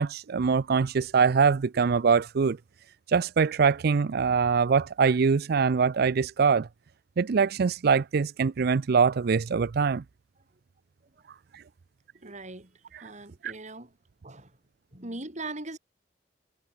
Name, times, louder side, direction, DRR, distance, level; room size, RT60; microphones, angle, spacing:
voice 1, 0.0-2.6 3.1-6.7 7.2-10.0 11.5-11.6 12.9-13.0 13.4-13.5, right 5 dB, 60° right, 0.5 m, -23 dB
voice 2, 12.2-12.7 13.0-13.9 14.2-14.6 14.9-15.8, right 2 dB, 40° right, 4.9 m, -40 dB
head